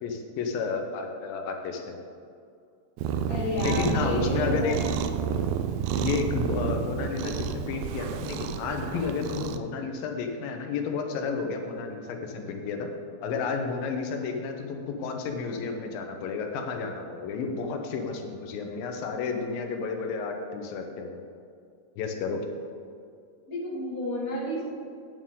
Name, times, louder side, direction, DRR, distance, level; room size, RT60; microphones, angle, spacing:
voice 1, 0.0-2.0 3.6-4.8 5.9-12.9 13.2-21.2 22.0-22.4, left 5 dB, 90° left, 4 dB, 2.6 m, -31 dB
Cat, 3.0-9.6, right 8 dB, 85° right, 1.7 m, -30 dB
voice 2, 3.3-4.8 23.5-24.6, left 1 dB, 30° left, -5 dB, 1.9 m, -31 dB
8.9 x 8.9 x 3.7 m, 2.3 s
omnidirectional pair, 4.0 m